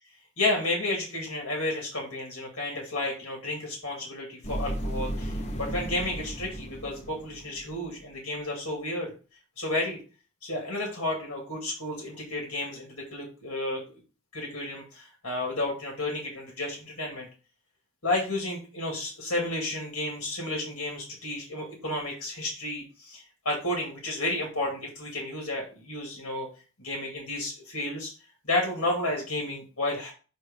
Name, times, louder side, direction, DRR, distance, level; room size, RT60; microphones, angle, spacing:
voice 1, 0.4-9.1 9.6-10.0 10.4-13.8 14.3-17.3 18.0-26.5 26.8-28.1 28.4-30.1, left 2 dB, 65° left, -1 dB, 2.2 m, -32 dB
sound 1, 4.4-7.9, right 1 dB, 30° left, 0.8 m, -34 dB
7.5 x 2.7 x 5.2 m, 0.36 s
head